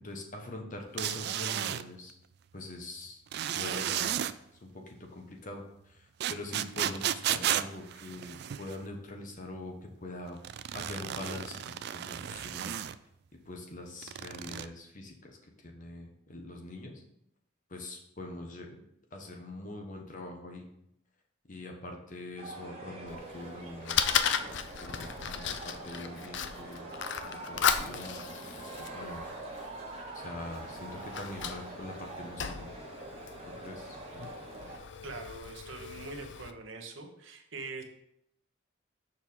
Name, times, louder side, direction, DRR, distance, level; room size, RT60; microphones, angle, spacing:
voice 1, 0.0-2.1 2.5-3.2 3.5-4.3 4.6-10.4 10.7-12.7 13.4-16.9 17.7-18.8 19.1-20.7 21.5-24.2 24.8-27.0 27.2-29.3 30.1-32.7 33.4-34.0, left 1 dB, 40° left, 2 dB, 1.1 m, -43 dB
sound 1, 1.0-1.8 3.3-4.3 6.2-8.8 10.4-13.0 14.0-14.7, right 11 dB, 55° right, 0.3 m, -33 dB
sound 2, 22.4-34.8, right 2 dB, 30° right, 1.4 m, -44 dB
Fire, 23.1-36.5, left 8 dB, 60° left, 0.5 m, -36 dB
voice 2, 35.0-37.8, right 4 dB, 70° right, 3 dB, 1.2 m, -43 dB
6.6 x 4.6 x 5.4 m, 0.76 s
head